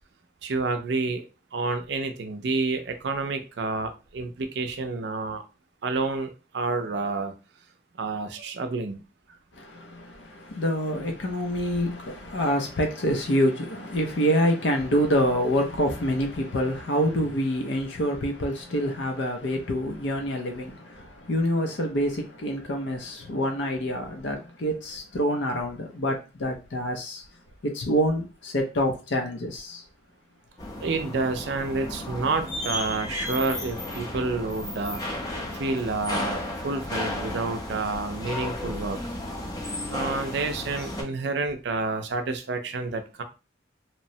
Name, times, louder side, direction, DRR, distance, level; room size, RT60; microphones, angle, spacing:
voice 1, 0.4-1.2 1.5-5.4 5.8-7.3 8.0-9.0 30.8-35.0 35.5-39.0 39.9-43.2, right 3 dB, 65° right, 0.4 m, -29 dB
voice 2, 9.5-27.2 27.6-29.8, equal, 70° left, 0.5 m, -26 dB
sound 1, 30.6-41.0, left 1 dB, 20° left, 0.5 m, -33 dB
2.9 x 2.0 x 2.7 m
head